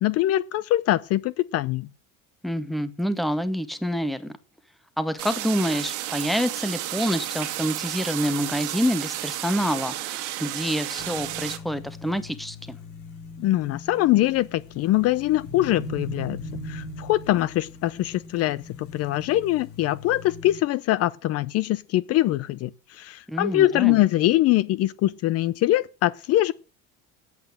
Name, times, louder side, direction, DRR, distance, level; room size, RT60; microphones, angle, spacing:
voice 1, 0.0-1.9 13.4-26.5, left 15 dB, 50° left, 0.5 m, -23 dB
voice 2, 2.4-4.3 5.0-12.8 23.3-24.0, equal, ahead, 0.9 m, -27 dB
sound 1, 5.2-11.6, right 14 dB, 65° right, 1.8 m, -32 dB
sound 2, 11.0-20.6, left 2 dB, 85° left, 3.6 m, -40 dB
8.8 x 8.3 x 7.6 m
cardioid pair, 150°, 32 cm